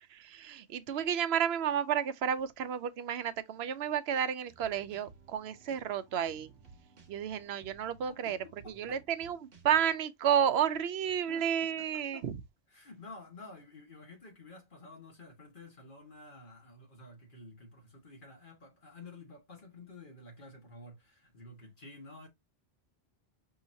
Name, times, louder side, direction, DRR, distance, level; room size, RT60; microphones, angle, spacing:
voice 1, 0.2-6.5 7.1-8.4 8.8-9.4 9.6-12.4, right 9 dB, 80° right, 0.8 m, -31 dB
sound 1, 4.5-9.8, right 4 dB, 60° right, 1.2 m, -58 dB
voice 2, 8.1-9.0 11.3-12.3 12.7-22.3, left 2 dB, 55° left, 1.7 m, -51 dB
5.6 x 2.9 x 2.6 m
omnidirectional pair, 1.1 m